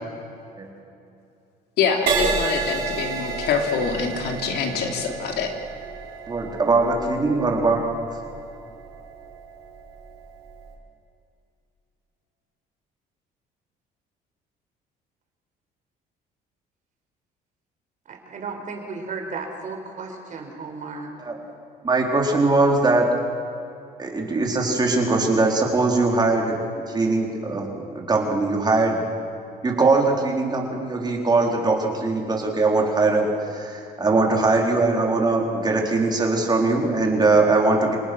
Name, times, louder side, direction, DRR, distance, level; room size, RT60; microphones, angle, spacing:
voice 1, 1.8-5.5, left 6 dB, 75° left, 3 dB, 3.1 m, -25 dB
Crash cymbal, 2.1-9.7 10.4-10.7, right 4 dB, 70° right, 5.5 m, -30 dB
voice 2, 6.3-8.2 21.2-21.4 21.8-23.1 24.0-29.0 29.6-38.0, right 3 dB, 25° right, 0 dB, 4.3 m, -21 dB
voice 3, 18.1-21.1, right 4 dB, 50° right, 3 dB, 4.6 m, -34 dB
27.5 x 19.0 x 6.2 m, 2.6 s
cardioid pair, 110°, 17 cm